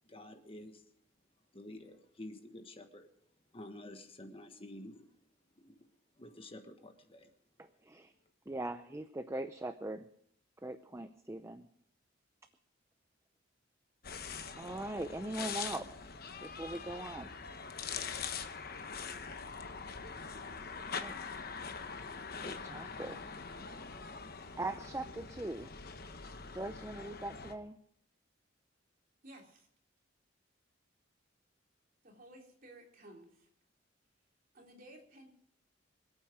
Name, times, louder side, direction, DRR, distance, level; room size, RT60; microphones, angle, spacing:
voice 1, 0.1-0.8 1.5-3.1 3.5-5.1 5.6-5.8 6.2-7.3, left 1 dB, 30° left, 6 dB, 1.3 m, -50 dB
voice 2, 7.6-8.1 8.5-10.1 10.6-11.7 14.6-15.9 16.4-17.3 19.8-20.0 20.8-21.2 22.4-23.2 24.6-25.7 26.5-27.8, right 2 dB, 15° right, 9 dB, 0.6 m, -41 dB
sound 1, 14.0-27.5, left 5 dB, 50° left, 1.1 m, -43 dB
voice 3, 29.2-29.7 32.0-33.5 34.5-35.3, right 1 dB, 45° right, 0 dB, 3.4 m, -55 dB
25.5 x 8.8 x 5.0 m, 0.68 s
head